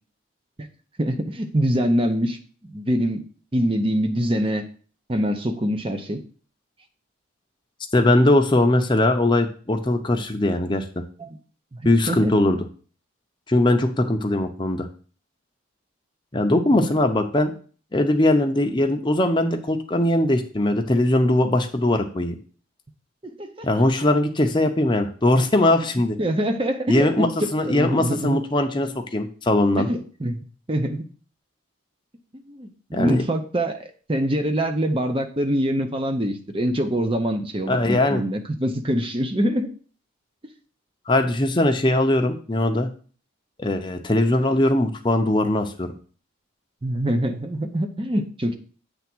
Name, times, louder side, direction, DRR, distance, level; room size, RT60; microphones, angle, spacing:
voice 1, 1.0-2.4 2.6-3.2 3.5-4.6 5.1-6.2 11.2-11.3 11.7-11.8 12.1-12.3 16.7-16.9 23.2-23.5 26.2-27.2 27.6-28.4 29.8-30.4 30.7-31.1 32.5-39.7 46.8-48.6, equal, 25° right, 6 dB, 0.7 m, -24 dB
voice 2, 7.9-11.0 11.8-12.6 13.5-14.9 16.3-17.5 17.9-22.3 23.6-26.2 26.9-29.9 32.9-33.2 37.7-38.2 41.1-42.9 43.6-45.9, left 1 dB, 20° left, 5 dB, 0.7 m, -20 dB
8.3 x 3.4 x 6.0 m, 0.42 s
head